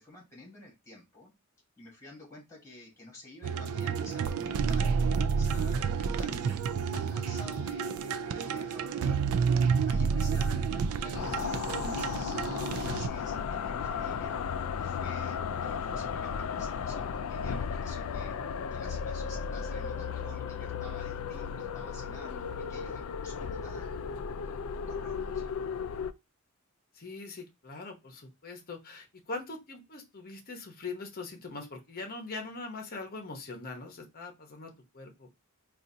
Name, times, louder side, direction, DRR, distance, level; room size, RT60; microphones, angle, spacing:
voice 1, 0.0-1.3 1.8-6.6 6.9-9.3 9.8-12.4 12.7-14.4 14.8-18.4 18.7-25.5, left 2 dB, 15° left, -2 dB, 1.8 m, -51 dB
sound 1, 3.4-13.1, right 6 dB, 80° right, 0.3 m, -30 dB
sound 2, 11.1-26.1, left 6 dB, 70° left, 0.3 m, -35 dB
voice 2, 26.9-35.3, left 3 dB, 45° left, 3 dB, 0.8 m, -42 dB
3.9 x 2.4 x 2.7 m, 0.24 s
head